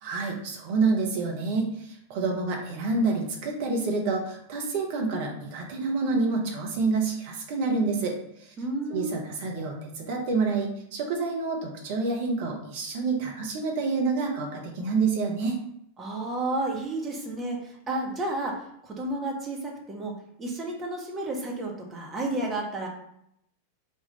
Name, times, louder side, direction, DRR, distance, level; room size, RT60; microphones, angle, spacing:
voice 1, 0.0-8.1 8.9-15.6, right 4 dB, 50° right, 1 dB, 0.9 m, -28 dB
voice 2, 8.6-9.2 16.0-22.9, right 2 dB, 20° right, -1 dB, 1.0 m, -32 dB
3.6 x 2.4 x 3.9 m, 0.75 s
figure-of-eight pair, 90°, 0 cm